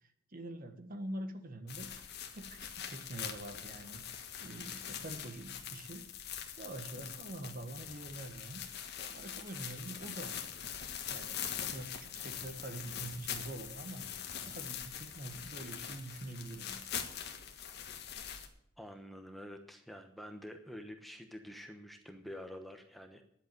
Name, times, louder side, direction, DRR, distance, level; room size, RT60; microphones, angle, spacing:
voice 1, 0.0-2.0 2.3-6.1 6.6-8.6 9.0-10.6 11.0-16.9, right 1 dB, 45° right, 7 dB, 1.5 m, -45 dB
Bubble Wrap Crinkle Close, 1.7-18.5, left 8 dB, 50° left, 1.7 m, -43 dB
voice 2, 18.8-23.2, equal, ahead, 5 dB, 1.1 m, -48 dB
11.0 x 7.9 x 9.2 m, 0.74 s
head